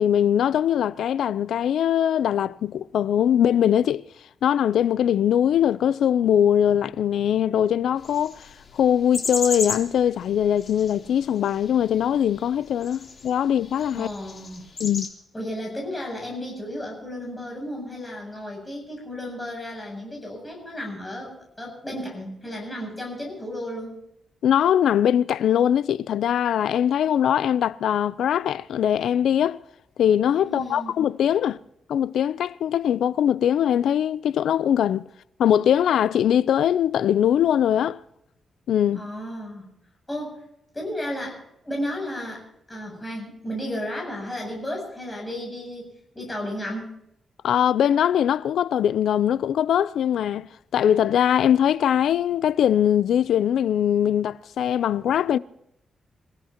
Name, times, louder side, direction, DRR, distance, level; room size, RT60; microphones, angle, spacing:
voice 1, 0.0-4.0 4.4-14.1 14.8-15.1 24.4-29.6 30.0-31.6 31.9-35.1 35.4-38.0 38.7-39.0 47.4-55.4, left 9 dB, 90° left, 0.5 m, -21 dB
sound 1, 8.0-15.1, left 4 dB, 40° left, 3.3 m, -35 dB
voice 2, 13.9-14.7 15.3-23.9 30.4-31.0 38.9-39.7 40.1-40.5 40.7-46.9, equal, 10° left, 7.8 m, -33 dB
27.5 x 16.0 x 2.9 m
wide cardioid pair, 165°, 0 cm